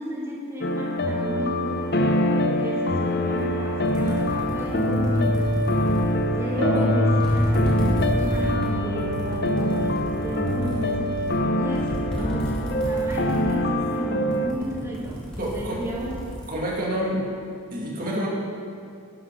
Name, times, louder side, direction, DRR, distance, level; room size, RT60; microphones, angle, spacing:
voice 1, 0.0-5.6 6.3-11.1 11.5-16.2, equal, 10° right, -4 dB, 2.1 m, -33 dB
sound 1, 0.6-14.5, left 1 dB, 45° left, 0.7 m, -24 dB
sound 2, 3.4-3.5 3.8-6.7 7.1-13.5 13.8-14.0 14.3-16.5, equal, 5° left, 2.7 m, -33 dB
voice 2, 6.6-6.9 15.4-15.8 16.5-17.2 17.7-18.3, right 1 dB, 40° right, -3 dB, 2.2 m, -27 dB
11.0 x 10.0 x 6.6 m, 2.4 s
head